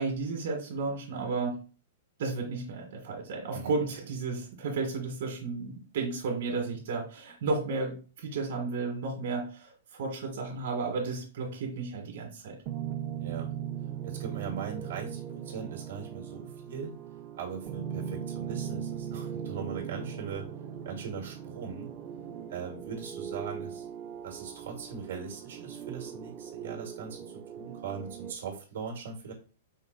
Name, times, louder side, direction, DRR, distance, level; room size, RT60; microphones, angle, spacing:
voice 1, 0.0-1.6 2.2-12.6, right 4 dB, 60° right, 1 dB, 1.6 m, -33 dB
voice 2, 3.5-3.9 13.2-13.5 14.0-16.9 17.4-20.5 20.9-21.9 22.5-23.9 24.2-29.3, right 6 dB, 80° right, 1 dB, 1.6 m, -40 dB
sound 1, 12.7-28.3, right 8 dB, 30° right, 0.5 m, -39 dB
5.3 x 2.4 x 3.8 m, 0.36 s
hypercardioid pair, 155°, 0 cm